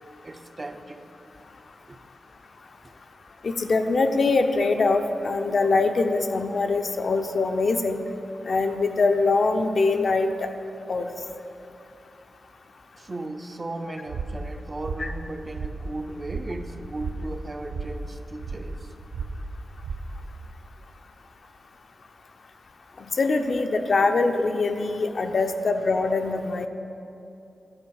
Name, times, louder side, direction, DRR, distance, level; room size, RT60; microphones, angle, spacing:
voice 1, 0.2-1.1 1.9-2.0 2.8-2.9 13.0-18.9, right 2 dB, 30° right, 7 dB, 0.4 m, -36 dB
voice 2, 3.4-8.0 8.5-10.3 10.9-11.1 15.0-15.1 23.2-26.7, left 3 dB, 55° left, 6 dB, 0.5 m, -23 dB
sound 1, 14.1-20.5, right 3 dB, 85° right, 0.6 m, -35 dB
9.6 x 5.2 x 6.3 m, 2.8 s
wide cardioid pair, 115°, 0 cm